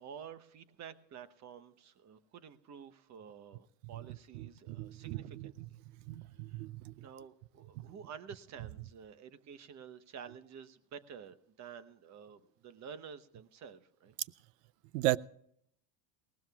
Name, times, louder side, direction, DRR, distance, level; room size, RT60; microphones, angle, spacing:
voice 1, 0.0-5.6 6.2-6.7 7.0-14.1, right 7 dB, 35° right, 11 dB, 1.1 m, -50 dB
voice 2, 4.3-5.5 6.1-7.1 7.8-7.9 14.9-15.2, right 16 dB, 85° right, 22 dB, 0.6 m, -36 dB
20.0 x 18.0 x 2.4 m, 0.68 s
supercardioid pair, 120°, 47 cm